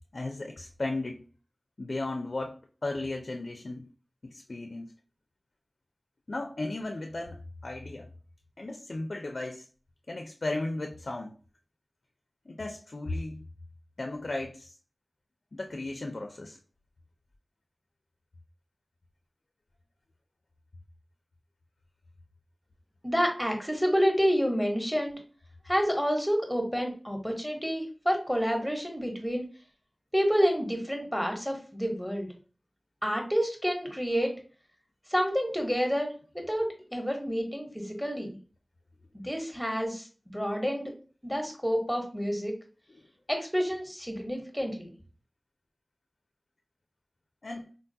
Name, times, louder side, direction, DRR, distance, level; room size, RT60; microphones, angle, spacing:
voice 1, 0.1-1.2 1.8-3.9 4.2-4.9 6.3-8.1 8.6-9.7 10.1-11.3 12.5-13.4 14.0-14.7 15.5-16.6 47.4-47.7, left 2 dB, 75° left, 0.4 m, -35 dB
voice 2, 23.0-25.2 25.7-29.4 30.1-32.3 33.0-34.3 35.1-38.3 39.1-40.9 41.2-42.5 43.3-44.9, equal, ahead, 0.9 m, -29 dB
3.8 x 2.2 x 2.6 m
wide cardioid pair, 45°, 0 cm